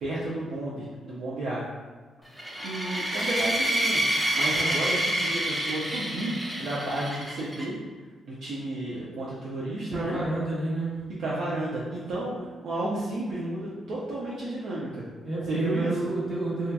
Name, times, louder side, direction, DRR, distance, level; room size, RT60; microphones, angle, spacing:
voice 1, 0.0-1.6 2.6-4.0 4.3-7.8 8.3-10.2 11.2-15.1 15.5-15.9, right 1 dB, 75° right, -7 dB, 0.4 m, -32 dB
sound 1, 2.4-7.6, right 1 dB, 10° right, 0.5 m, -28 dB
voice 2, 9.9-10.9 15.2-16.7, right 2 dB, 45° right, -7 dB, 1.1 m, -29 dB
2.7 x 2.3 x 2.2 m, 1.4 s
cardioid pair, 65°, 0 cm